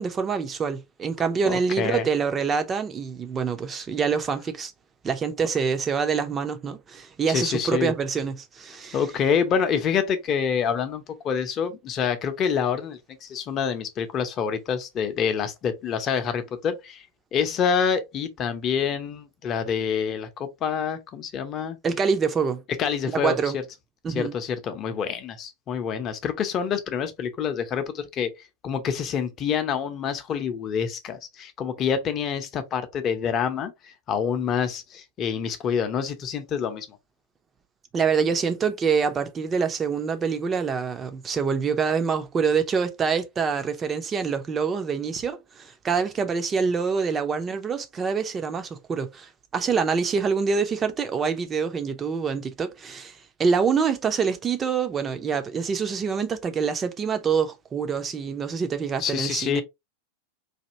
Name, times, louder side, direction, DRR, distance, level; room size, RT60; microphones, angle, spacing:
voice 1, 0.0-4.7 5.0-9.0 21.8-22.6 23.1-23.6 24.0-24.3 37.9-59.6, right 6 dB, 20° right, 0.6 m, -26 dB
voice 2, 1.5-2.1 7.3-7.9 8.9-17.1 17.3-21.8 22.8-23.6 24.1-28.3 28.6-37.0 59.0-59.6, left 7 dB, 30° left, 0.8 m, -27 dB
4.2 x 2.8 x 2.6 m
figure-of-eight pair, 90°, 0 cm